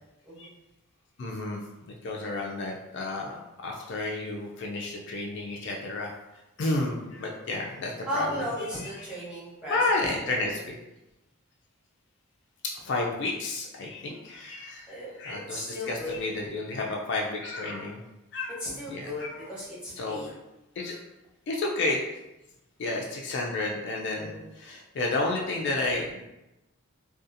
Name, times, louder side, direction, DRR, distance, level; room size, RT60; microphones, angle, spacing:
voice 1, 1.2-8.4 9.0-9.1 9.7-10.8 12.7-18.0 18.3-18.5 18.9-19.5 20.0-20.4 20.8-21.0 21.5-22.0 22.8-26.2, left 2 dB, 55° left, -1 dB, 0.3 m, -31 dB
voice 2, 8.1-10.5 14.9-16.1 18.6-20.3 24.1-24.4, left 1 dB, 5° right, -9 dB, 0.8 m, -36 dB
2.6 x 2.3 x 2.5 m, 0.94 s
head